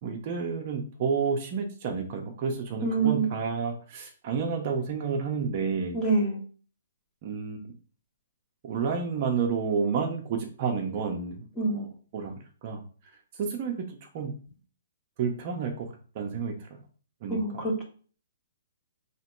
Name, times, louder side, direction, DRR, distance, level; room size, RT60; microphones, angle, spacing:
voice 1, 0.0-6.0 7.2-7.7 8.6-12.3 12.6-12.8 13.4-14.3 15.2-16.8 17.2-17.7, right 5 dB, 35° right, 2 dB, 0.7 m, -30 dB
voice 2, 2.8-3.3 5.9-6.4 11.6-11.8 17.3-17.8, right 4 dB, 15° left, -2 dB, 1.1 m, -25 dB
3.3 x 2.9 x 4.4 m, 0.40 s
hypercardioid pair, 155°, 0 cm